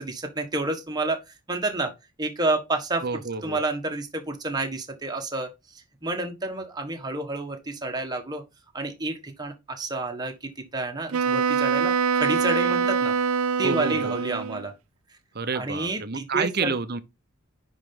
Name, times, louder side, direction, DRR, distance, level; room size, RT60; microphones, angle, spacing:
voice 1, 0.0-1.9 2.2-3.0 3.4-8.4 8.7-13.1 13.6-14.7 15.5-16.7, right 2 dB, 20° right, 1.4 m, -29 dB
voice 2, 3.0-3.6 13.6-14.1 15.3-17.0, right 4 dB, 45° right, 0.8 m, -29 dB
Wind instrument woodwind instrument, 11.1-14.7, right 6 dB, 75° right, 0.5 m, -24 dB
10.0 x 4.1 x 3.9 m
head